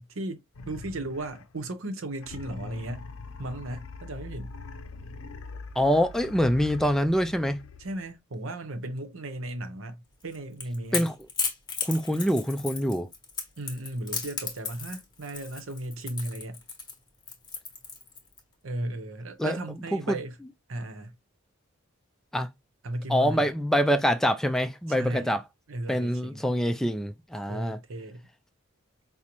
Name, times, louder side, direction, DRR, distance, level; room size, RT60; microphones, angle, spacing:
voice 1, 0.0-3.1 3.4-4.5 7.8-11.1 13.6-16.6 18.6-20.4 20.7-21.1 22.8-23.5 25.0-25.3 25.7-26.4 27.5-28.3, right 1 dB, 70° right, 0.8 m, -35 dB
sound 1, 0.5-1.7 2.2-8.2, left 3 dB, 75° left, 0.5 m, -43 dB
voice 2, 5.8-7.6 10.9-11.1 11.8-13.1 19.4-19.6 19.9-20.2 22.3-22.5 23.1-25.4 25.9-27.8, equal, ahead, 0.3 m, -25 dB
Crackle / Crack, 10.2-18.4, left 5 dB, 20° left, 1.0 m, -35 dB
5.1 x 2.0 x 2.9 m
head